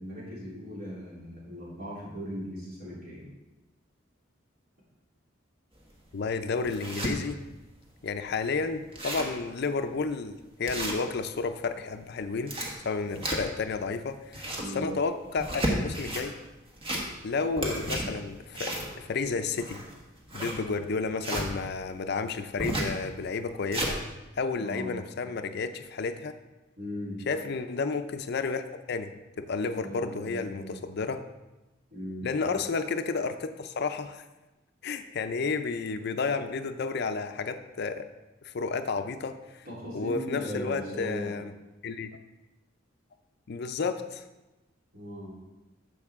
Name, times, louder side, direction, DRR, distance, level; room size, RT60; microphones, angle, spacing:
voice 1, 0.0-3.3 14.6-14.9 24.6-25.0 26.8-27.2 29.6-30.7 31.9-32.5 39.6-41.4 44.9-45.4, equal, 50° right, -6 dB, 3.4 m, -38 dB
sound 1, 5.8-5.9 6.4-7.1 7.7-7.8 8.1-8.2 8.5-8.6 8.8-9.4 9.9-10.0 10.6-11.4 12.2-13.7 14.1-14.8 15.3-16.3 16.7-17.3 17.6-21.5 22.6-23.0 23.4-23.9, right 1 dB, 30° right, 1.4 m, -32 dB
voice 2, 6.1-7.4 8.0-12.5 12.8-14.5 14.7-16.3 17.2-19.8 20.3-24.0 24.4-26.3 27.3-31.2 32.2-34.2 34.8-38.1 38.4-39.7 39.9-41.5 41.8-42.1 43.5-44.2, left 4 dB, 55° left, 9 dB, 0.5 m, -31 dB
9.9 x 7.0 x 3.6 m, 1.0 s
head